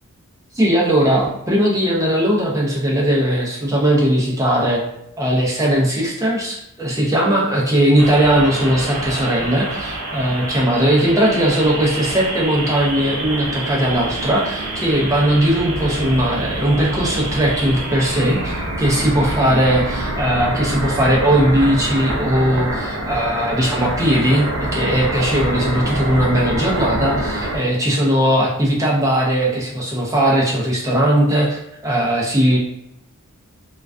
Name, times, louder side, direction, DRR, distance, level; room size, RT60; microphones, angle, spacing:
voice 1, 0.6-4.8 5.2-32.6, right 1 dB, 15° right, -4 dB, 0.5 m, -18 dB
sound 1, 8.0-27.6, right 1 dB, 65° right, 0.5 m, -26 dB
2.3 x 2.2 x 2.4 m, 0.83 s
head